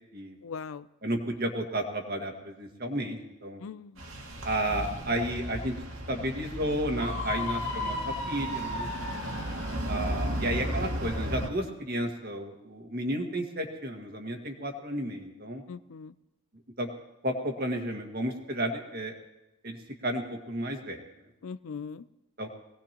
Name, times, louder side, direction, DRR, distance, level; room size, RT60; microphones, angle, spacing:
voice 1, 0.4-0.9 3.6-4.0 7.4-7.5 15.7-16.1 21.4-22.0, left 5 dB, 80° left, 16 dB, 0.5 m, -40 dB
voice 2, 1.0-3.6 4.4-5.7 6.1-8.9 9.9-15.6 16.8-16.9 17.2-19.2 19.6-19.8 20.0-21.0 22.4-22.5, right 1 dB, 45° right, 3 dB, 1.8 m, -32 dB
sound 1, 4.0-11.5, right 1 dB, 80° right, 2.2 m, -35 dB
Screaming, 7.0-9.9, left 3 dB, 60° left, 1.4 m, -35 dB
22.0 x 18.0 x 3.0 m, 0.94 s
head